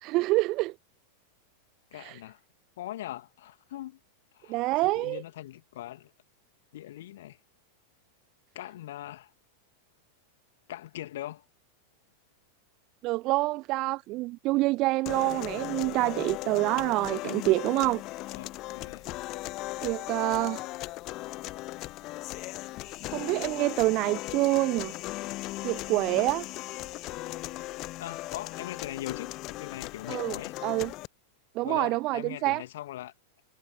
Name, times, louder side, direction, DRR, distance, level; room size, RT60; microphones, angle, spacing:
voice 1, 0.0-0.7 1.9-2.2 4.5-5.2 13.0-18.0 19.8-20.6 23.1-24.9 25.6-26.4 30.1-30.9 31.5-32.6, right 20 dB, 40° right, 0.7 m, -27 dB
voice 2, 1.9-2.4 2.8-4.0 4.3-6.1 6.7-7.4 8.5-9.3 10.7-11.4 15.6-15.7 18.3-19.1 28.0-30.5 31.6-33.1, left 14 dB, 55° left, 2.5 m, -41 dB
sound 1, 15.1-31.1, left 19 dB, 40° left, 1.0 m, -38 dB
figure-of-eight pair, 90°, 0 cm